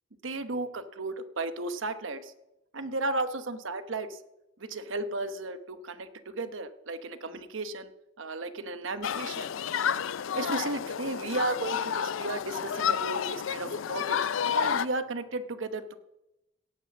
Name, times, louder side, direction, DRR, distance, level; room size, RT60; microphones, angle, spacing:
voice 1, 0.2-2.3 2.7-4.2 4.6-7.9 8.2-9.5 10.3-15.9, right 2 dB, 70° right, 10 dB, 0.9 m, -34 dB
Human group actions, 9.0-14.9, left 8 dB, 70° left, 0.4 m, -30 dB
17.0 x 5.9 x 7.3 m, 0.92 s
head